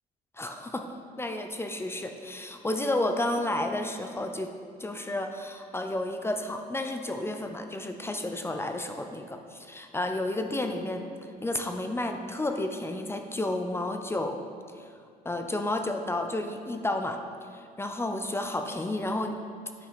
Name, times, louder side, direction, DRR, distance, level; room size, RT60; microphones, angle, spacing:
voice 1, 0.4-4.5 4.8-11.1 11.4-14.4 15.2-17.2 17.5-19.4, left 1 dB, 15° left, 5 dB, 0.5 m, -31 dB
9.3 x 5.5 x 4.1 m, 2.3 s
cardioid pair, 110°, 17 cm